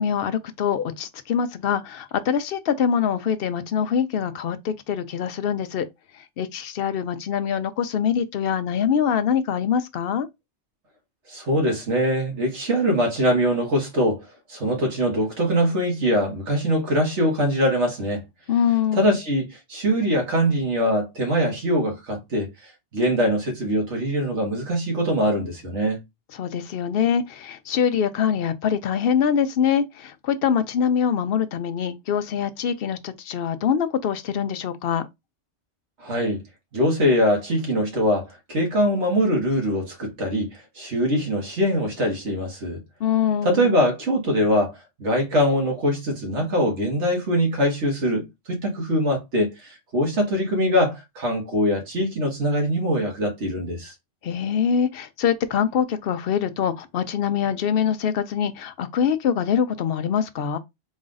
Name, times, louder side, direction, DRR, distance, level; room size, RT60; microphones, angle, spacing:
voice 1, 0.0-5.9 6.4-10.3 18.5-19.2 26.3-35.1 43.0-43.7 54.2-60.6, left 8 dB, 65° left, 0.7 m, -24 dB
voice 2, 11.3-14.2 14.5-18.2 19.0-22.5 22.9-26.0 36.0-36.4 36.7-42.8 43.4-44.7 45.0-53.9, equal, 80° right, 1.9 m, -22 dB
4.1 x 2.5 x 3.8 m
omnidirectional pair, 1.2 m